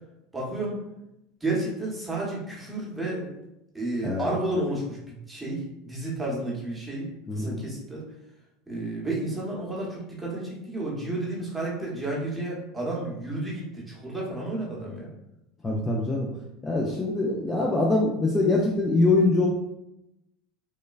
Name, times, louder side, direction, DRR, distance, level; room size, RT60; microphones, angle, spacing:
voice 1, 0.3-0.8 1.4-3.4 3.7-8.0 8.7-15.1, right 2 dB, 10° right, -4 dB, 0.8 m, -31 dB
voice 2, 7.3-7.6 15.6-16.3 16.6-19.5, left 2 dB, 15° left, -2 dB, 0.3 m, -23 dB
3.0 x 2.2 x 2.3 m, 0.87 s
supercardioid pair, 130°, 0 cm